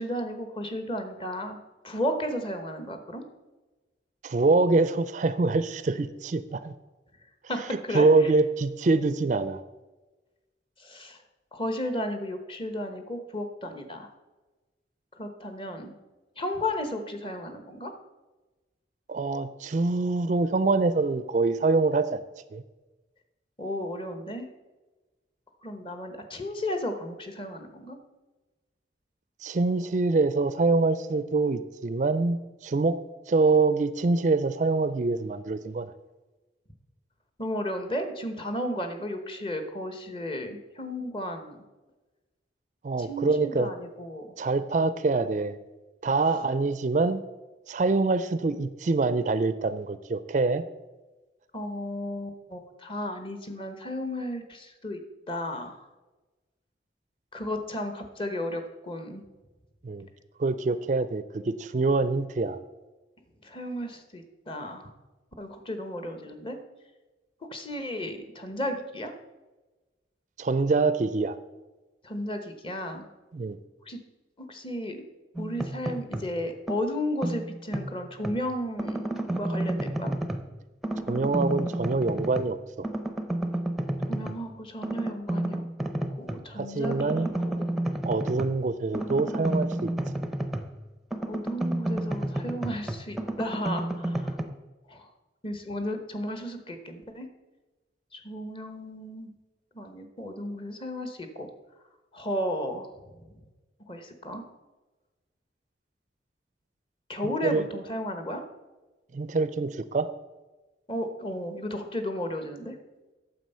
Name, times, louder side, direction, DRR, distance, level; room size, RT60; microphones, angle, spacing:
voice 1, 0.0-1.6 1.8-3.2 7.5-8.1 10.8-11.2 11.5-14.1 15.1-15.9 16.4-17.9 23.6-24.5 25.6-28.0 37.4-41.6 43.0-44.3 51.5-55.0 55.3-55.8 57.3-59.2 63.4-64.9 65.4-66.6 67.5-69.1 72.0-73.1 73.9-74.0 74.5-75.0 75.4-80.1 84.1-85.6 86.2-87.1 87.4-87.7 91.2-94.3 94.9-95.1 95.4-97.3 98.1-99.3 99.7-101.5 102.1-102.9 103.9-104.4 107.1-108.4 110.9-112.8, left 1 dB, 30° left, 7 dB, 1.1 m, -34 dB
voice 2, 4.2-6.7 7.6-9.6 19.1-22.2 22.5-22.6 29.4-32.4 32.6-33.0 33.3-35.9 42.8-43.7 44.4-45.6 46.0-47.2 47.7-50.6 59.8-60.1 60.4-62.6 70.4-71.4 73.3-73.6 81.1-82.6 86.6-87.3 88.0-89.9 107.2-107.7 109.1-110.1, right 3 dB, 40° right, 13 dB, 0.4 m, -25 dB
sound 1, 75.4-76.4 76.7-78.4 78.8-80.5 80.8-82.6 82.8-84.4 84.8-86.5 86.8-90.8 91.1-94.4, right 1 dB, ahead, 0.6 m, -31 dB
9.3 x 7.1 x 5.5 m, 1.2 s
head